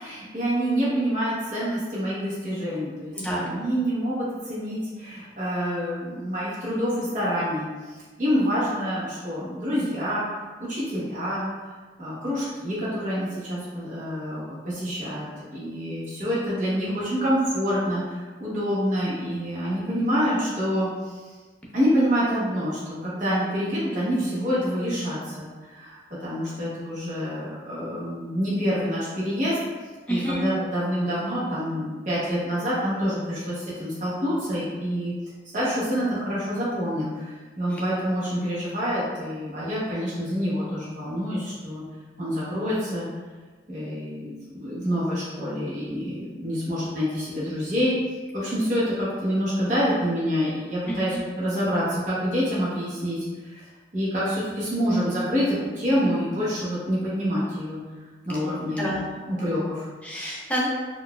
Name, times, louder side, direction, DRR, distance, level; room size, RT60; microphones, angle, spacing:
voice 1, 0.0-10.3 10.6-11.5 12.0-15.3 15.5-21.2 21.7-29.6 30.1-35.1 35.5-41.8 42.2-43.1 43.7-48.0 48.3-53.7 53.9-57.8 58.3-58.9 59.3-59.9, equal, 45° right, -9 dB, 0.9 m, -27 dB
voice 2, 3.2-3.5 30.1-30.4 37.7-37.8 50.9-51.0 58.8-59.1 60.0-60.7, equal, 10° left, -5 dB, 0.5 m, -28 dB
4.0 x 2.4 x 2.2 m, 1.4 s
head